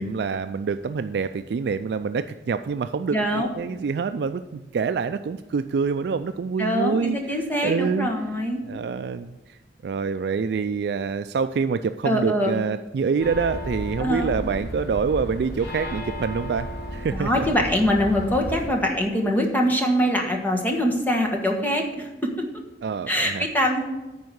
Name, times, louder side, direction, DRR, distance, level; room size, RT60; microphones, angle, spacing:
voice 1, 0.0-7.4 7.6-8.1 8.6-17.5 22.8-23.4, right 5 dB, 65° right, 10 dB, 0.3 m, -26 dB
voice 2, 3.1-3.5 6.6-8.6 12.0-12.5 14.0-14.3 17.1-22.1 23.1-23.8, equal, 10° left, 2 dB, 1.3 m, -23 dB
sound 1, 13.2-18.7, equal, 80° left, 3.4 m, -33 dB
9.5 x 4.7 x 7.8 m, 1.1 s
head